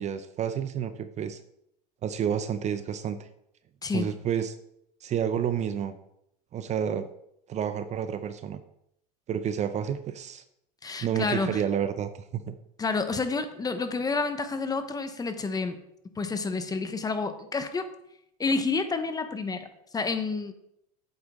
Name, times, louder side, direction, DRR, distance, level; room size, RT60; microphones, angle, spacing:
voice 1, 0.0-1.4 2.0-3.3 3.9-4.6 5.0-5.9 6.5-7.1 7.5-8.6 9.3-10.4 11.0-12.5, right 8 dB, 35° right, 11 dB, 0.6 m, -30 dB
voice 2, 10.8-11.6 12.8-15.8 16.2-17.9 18.4-20.5, left 4 dB, 20° left, 9 dB, 0.9 m, -29 dB
7.9 x 7.8 x 3.6 m, 0.77 s
supercardioid pair, 115°, 20 cm